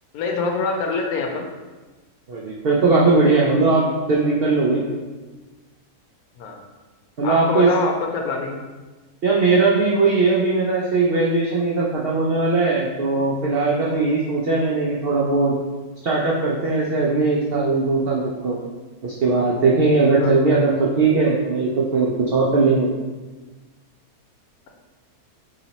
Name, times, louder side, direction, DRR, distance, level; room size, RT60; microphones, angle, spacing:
voice 1, 0.1-1.5 6.4-6.6 7.2-8.6 20.2-20.3, left 4 dB, 75° left, 2 dB, 1.1 m, -25 dB
voice 2, 2.3-4.8 7.2-7.7 9.2-15.6 16.0-18.6 19.0-22.9, right 3 dB, 90° right, -4 dB, 0.5 m, -19 dB
3.0 x 2.9 x 3.9 m, 1.3 s
omnidirectional pair, 1.6 m